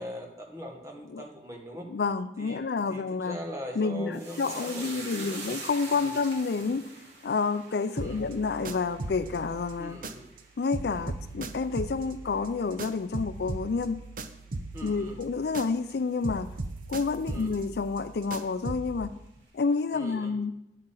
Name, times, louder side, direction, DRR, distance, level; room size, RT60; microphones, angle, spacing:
voice 1, 0.0-1.9 2.4-5.6 5.9-6.2 8.0-8.3 9.8-10.3 14.7-15.2 17.2-17.5 19.9-20.4, equal, 15° right, 1 dB, 1.5 m, -41 dB
voice 2, 1.9-3.4 3.8-6.8 7.2-10.0 10.6-14.0 14.8-16.5 16.9-19.1 19.5-20.5, left 4 dB, 60° left, 12 dB, 0.4 m, -29 dB
sound 1, 4.1-12.7 13.0-13.7 14.0-14.2, right 3 dB, 90° right, 2.4 m, -45 dB
sound 2, 8.0-10.5 10.7-16.0 16.2-19.0, right 2 dB, 50° right, 0.6 m, -39 dB
9.8 x 8.5 x 3.9 m, 0.85 s
head